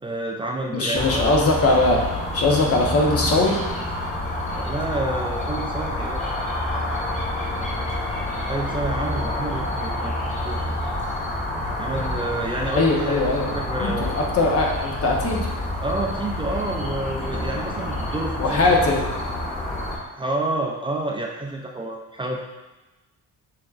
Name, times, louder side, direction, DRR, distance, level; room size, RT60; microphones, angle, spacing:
voice 1, 0.0-1.2 4.5-6.3 8.5-10.8 11.8-13.2 13.5-14.1 15.8-18.6 20.1-22.4, right 2 dB, 15° right, -1 dB, 0.5 m, -29 dB
voice 2, 0.7-2.0 2.3-3.6 12.8-13.5 13.8-15.5 18.4-19.1, left 2 dB, 50° left, 0 dB, 0.9 m, -20 dB
sound 1, 0.9-20.0, left 1 dB, 25° left, 1.5 m, -28 dB
6.1 x 3.3 x 2.4 m, 1.1 s
cardioid pair, 90°, 30 cm